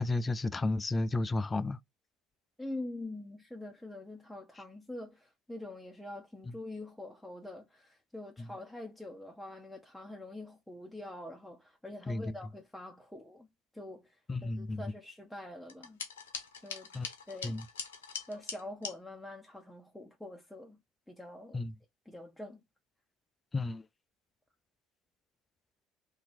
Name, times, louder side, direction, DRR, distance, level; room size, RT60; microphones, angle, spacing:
voice 1, 0.0-1.8 8.4-8.5 12.1-12.3 14.3-14.8 16.9-17.1 17.4-17.6 21.5-21.7 23.5-23.8, left 2 dB, 25° left, 0.3 m, -32 dB
voice 2, 2.6-13.5 13.7-16.0 16.6-16.9 17.3-17.6 18.3-20.8 21.1-21.7 22.1-22.6, left 1 dB, ahead, 0.8 m, -45 dB
sound 1, 15.7-19.0, left 6 dB, 85° left, 0.7 m, -42 dB
2.8 x 2.7 x 4.1 m
hypercardioid pair, 65°, 0 cm